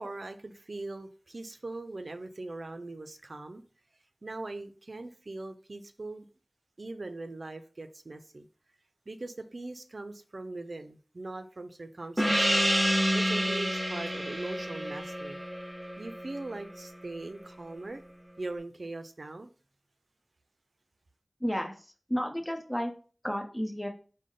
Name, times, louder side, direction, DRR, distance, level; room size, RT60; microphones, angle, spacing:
voice 1, 0.0-3.6 4.2-6.2 6.8-8.5 9.1-12.7 13.1-15.4 16.0-18.0 18.4-19.5, right 2 dB, 75° right, 0.4 m, -41 dB
Gong, 12.2-17.2, equal, 10° right, 0.6 m, -29 dB
voice 2, 21.4-21.8 22.1-22.9 23.2-23.9, equal, 15° left, 0.8 m, -31 dB
4.9 x 2.1 x 3.7 m
wide cardioid pair, 40°, 0 cm